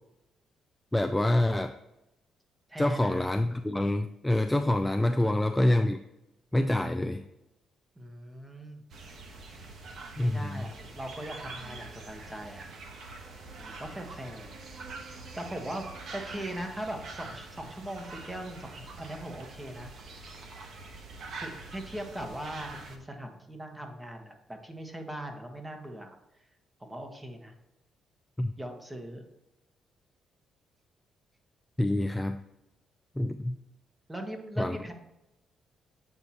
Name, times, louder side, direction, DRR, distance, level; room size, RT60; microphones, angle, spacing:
voice 1, 0.9-1.7 2.8-6.0 6.5-7.3 10.2-10.7 28.4-28.5 31.8-32.4 33.2-33.6 34.6-34.9, left 1 dB, 10° left, 7 dB, 0.3 m, -26 dB
voice 2, 2.7-3.3 5.1-5.4 8.0-8.8 10.2-12.7 13.6-14.6 15.4-19.9 21.4-26.2 26.8-27.5 28.6-29.2 34.1-34.9, right 1 dB, 15° right, 4 dB, 1.3 m, -40 dB
sound 1, 8.9-23.0, right 3 dB, 65° right, 1.2 m, -45 dB
8.0 x 5.4 x 2.9 m, 0.95 s
cardioid pair, 90°, 0 cm